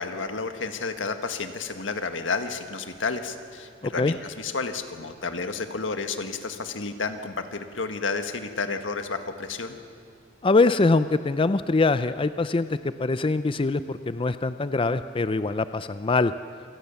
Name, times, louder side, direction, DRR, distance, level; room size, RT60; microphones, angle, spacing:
voice 1, 0.0-9.8, left 4 dB, 90° left, 8 dB, 1.6 m, -31 dB
voice 2, 3.8-4.1 10.4-12.7 13.0-16.3, left 3 dB, 30° left, 13 dB, 0.5 m, -23 dB
27.5 x 19.5 x 7.0 m, 2.3 s
head